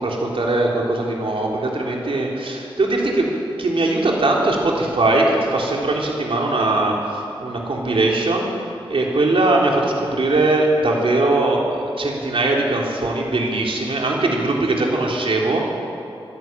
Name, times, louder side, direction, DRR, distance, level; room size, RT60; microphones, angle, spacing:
voice 1, 0.0-3.3 3.6-8.5 8.9-15.6, right 2 dB, 70° right, -1 dB, 3.5 m, -20 dB
25.0 x 11.5 x 9.1 m, 2.7 s
wide cardioid pair, 105°, 10 cm